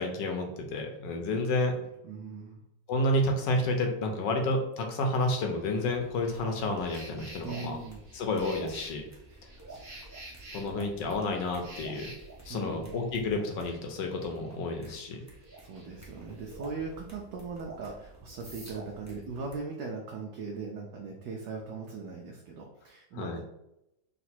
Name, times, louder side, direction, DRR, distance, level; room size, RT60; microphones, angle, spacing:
voice 1, 0.0-1.7 2.9-7.8 8.1-9.0 10.5-12.1 12.5-15.2 23.1-23.4, left 2 dB, 75° left, 3 dB, 1.4 m, -30 dB
voice 2, 1.8-2.6 7.4-8.0 9.3-10.2 12.5-13.0 15.3-23.4, right 4 dB, 70° right, 0 dB, 1.2 m, -40 dB
sound 1, 5.3-14.8 15.0-16.5, right 1 dB, 40° right, 1.0 m, -51 dB
sound 2, 5.8-19.6, right 2 dB, 25° right, 0.3 m, -50 dB
3.9 x 2.5 x 4.3 m, 0.84 s
omnidirectional pair, 2.0 m